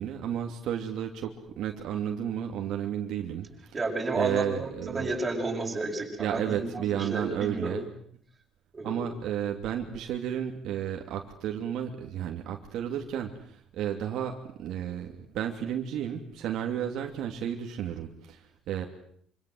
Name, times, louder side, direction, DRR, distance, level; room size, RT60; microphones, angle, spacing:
voice 1, 0.0-3.5 4.1-5.2 6.2-7.9 8.8-18.8, right 10 dB, 65° right, 3 dB, 2.9 m, -32 dB
voice 2, 3.7-7.8 8.7-9.1, right 2 dB, 15° right, 1 dB, 7.0 m, -32 dB
27.0 x 26.5 x 8.0 m, 0.64 s
cardioid pair, 170°, 0 cm